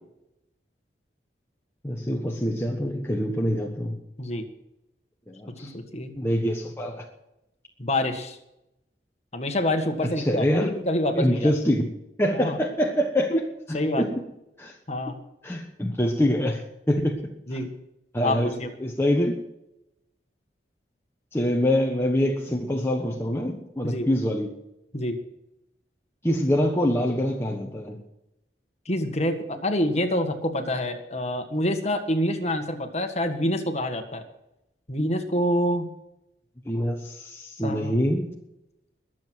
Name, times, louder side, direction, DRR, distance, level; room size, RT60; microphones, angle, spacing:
voice 1, 1.8-4.0 5.3-5.7 6.2-7.0 10.0-10.7 11.1-11.9 12.2-13.3 14.0-14.1 14.6-14.8 15.4-17.2 18.1-18.5 18.8-19.5 21.3-24.6 26.2-28.0 36.7-38.3, equal, 15° left, 0 dB, 1.2 m, -25 dB
voice 2, 5.7-6.1 7.8-8.4 9.3-11.5 12.3-12.6 13.3-13.4 13.7-14.1 14.9-15.2 17.5-17.7 18.2-18.7 23.8-24.1 24.9-25.2 28.9-34.2 34.9-35.9 37.6-38.1, left 1 dB, 40° left, 6 dB, 1.6 m, -26 dB
22.0 x 7.7 x 6.3 m, 0.88 s
head